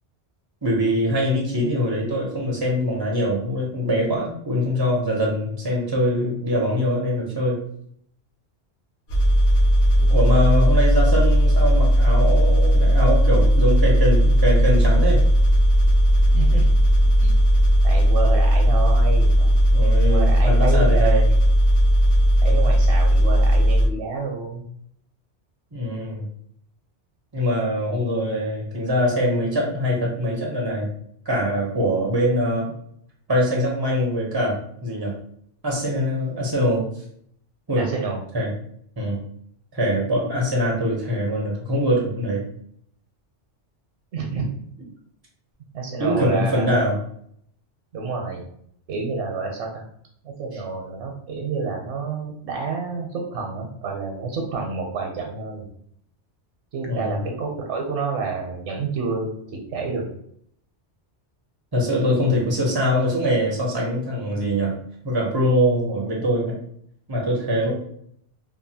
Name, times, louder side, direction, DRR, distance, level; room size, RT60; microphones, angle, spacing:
voice 1, 0.6-7.6 10.1-15.2 19.7-21.2 25.7-26.3 27.3-30.9 31.3-32.7 33.3-35.1 35.6-36.8 37.7-37.9 38.3-38.5 39.0-39.2 39.7-42.4 46.0-47.0 56.9-57.2 61.7-64.7 65.0-66.6 67.1-67.7, equal, 40° right, -2 dB, 0.3 m, -23 dB
sound 1, 9.1-23.9, equal, 65° left, 0.9 m, -16 dB
voice 2, 16.3-16.8 17.2-17.3 17.8-19.6 20.1-21.2 22.4-24.6 37.8-38.2 44.1-44.5 44.8-44.9 45.7-46.7 47.9-48.4 48.9-49.8 50.2-55.7 56.7-60.1, right 4 dB, 80° right, 0 dB, 0.9 m, -29 dB
2.8 x 2.2 x 2.7 m, 0.67 s
omnidirectional pair, 1.2 m